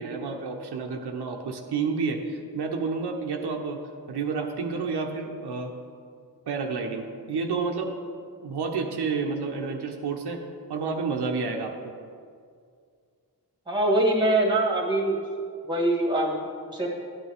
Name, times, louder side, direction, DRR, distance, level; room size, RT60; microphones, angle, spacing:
voice 1, 0.0-3.8 4.1-5.7 6.5-7.9 8.4-10.4 10.7-11.7, right 4 dB, 85° right, 2 dB, 1.0 m, -30 dB
voice 2, 13.7-15.2 15.6-16.9, right 1 dB, 10° right, -1 dB, 1.7 m, -24 dB
12.5 x 8.9 x 3.5 m, 2.2 s
wide cardioid pair, 125°, 39 cm